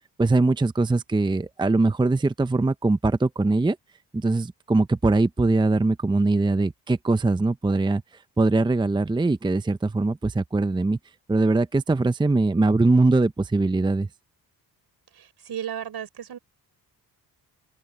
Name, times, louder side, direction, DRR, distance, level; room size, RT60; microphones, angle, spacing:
voice 1, 0.2-3.8 4.1-8.0 8.4-11.0 11.3-14.1, right 2 dB, 10° right, 0.7 m, -22 dB
voice 2, 15.5-16.4, right 9 dB, 65° right, 5.2 m, -33 dB
cardioid pair, 80°, 41 cm